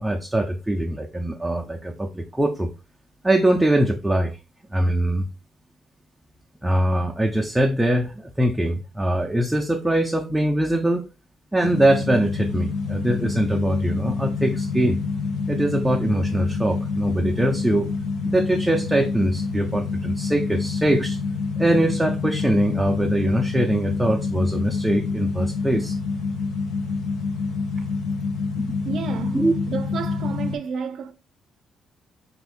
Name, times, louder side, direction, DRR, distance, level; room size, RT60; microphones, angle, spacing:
voice 1, 0.0-2.7 3.2-4.4 4.7-5.2 6.6-11.1 11.5-15.0 15.5-17.9 18.2-21.2 21.6-26.0 28.6-28.7 29.3-29.5, right 1 dB, 10° right, 0.4 m, -22 dB
sound 1, 11.6-30.6, left 4 dB, 85° left, 0.7 m, -27 dB
voice 2, 28.4-31.1, right 6 dB, 65° right, 0.4 m, -32 dB
2.9 x 2.5 x 3.6 m
cardioid pair, 90°, 0 cm